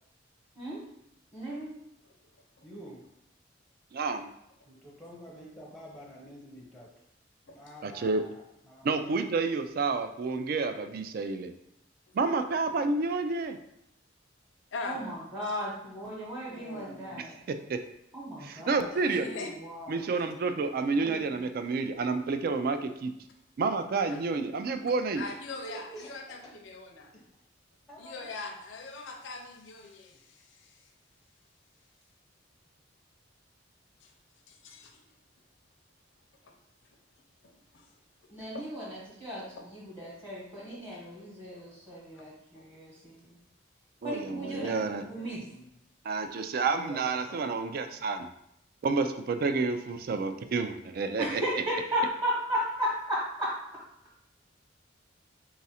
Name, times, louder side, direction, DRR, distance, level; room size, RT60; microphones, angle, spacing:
voice 1, 1.3-1.7 14.8-17.3 18.1-18.8 19.3-20.0 21.0-21.2 38.3-43.4 44.0-45.4 51.2-53.5, equal, 20° right, -7 dB, 1.0 m, -35 dB
voice 2, 2.6-3.1 4.7-6.9 7.5-9.1 25.3-26.5 27.1-27.2 27.9-28.3 44.2-45.6 46.7-47.4, right 1 dB, ahead, -3 dB, 0.6 m, -48 dB
voice 3, 3.9-4.3 7.8-8.2 8.8-11.5 12.1-13.6 17.2-17.8 18.4-19.3 19.9-23.1 23.6-25.3 44.0-45.0 46.0-48.3 48.8-51.4, right 4 dB, 50° right, 9 dB, 0.3 m, -30 dB
voice 4, 14.7-15.1 15.4-15.6 16.5-17.2 18.9-19.5 24.1-24.2 25.1-27.1 28.0-30.8 34.0-34.1 34.5-35.1 36.4-36.5 37.4-37.9 38.5-38.7 39.4-39.7 40.6-41.0 41.5-41.6 42.1-42.2 42.5-42.7, left 3 dB, 75° left, 3 dB, 0.5 m, -42 dB
4.0 x 2.4 x 4.2 m, 0.79 s
head